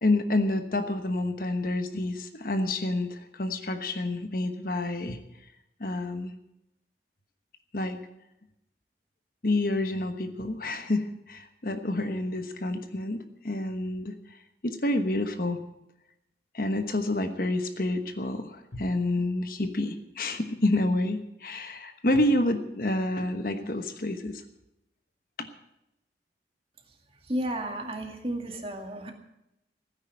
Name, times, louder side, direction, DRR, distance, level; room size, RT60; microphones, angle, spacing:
voice 1, 0.0-5.2 5.8-6.3 7.7-8.0 9.4-14.1 14.6-15.6 16.5-24.4 25.4-25.5, left 1 dB, 55° left, 8 dB, 1.1 m, -28 dB
voice 2, 27.3-29.1, right 1 dB, 30° right, 3 dB, 2.1 m, -32 dB
16.5 x 9.7 x 7.6 m, 0.86 s
head